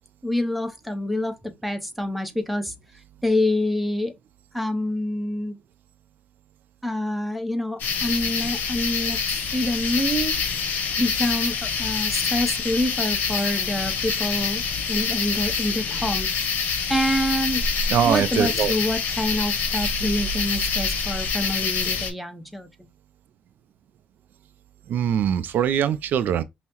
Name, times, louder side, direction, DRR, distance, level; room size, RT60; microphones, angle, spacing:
voice 1, 0.2-2.7 3.2-4.1 4.5-5.6 6.8-9.2 9.5-10.3 11.0-14.6 14.9-16.3 16.9-17.6 18.0-22.9, left 1 dB, ahead, 0.6 m, -26 dB
sound 1, 7.8-22.1, left 5 dB, 65° left, 1.0 m, -26 dB
voice 2, 17.9-18.7 24.9-26.4, right 9 dB, 65° right, 0.3 m, -22 dB
5.4 x 2.0 x 2.9 m
cardioid pair, 135°, 3 cm